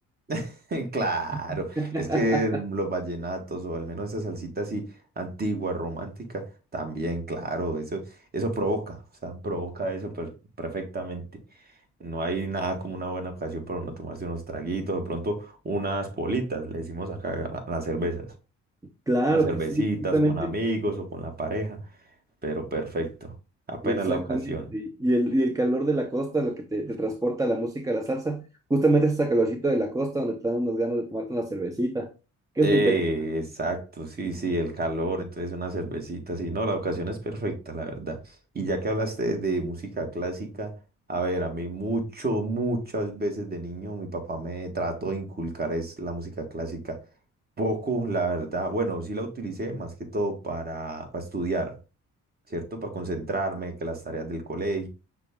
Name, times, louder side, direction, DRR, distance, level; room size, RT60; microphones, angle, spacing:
voice 1, 0.3-6.5 6.7-10.3 10.6-11.2 12.0-18.3 19.3-21.8 22.4-23.3 23.7-24.7 32.6-40.7 41.1-47.0 47.6-51.8 52.5-54.9, right 2 dB, 30° right, 1.3 m, -30 dB
voice 2, 1.5-2.4 19.1-19.8 20.1-20.5 23.8-28.4 28.7-32.1 32.6-33.0, right 2 dB, 10° right, 0.5 m, -25 dB
5.8 x 2.3 x 3.5 m
cardioid pair, 90°, 30 cm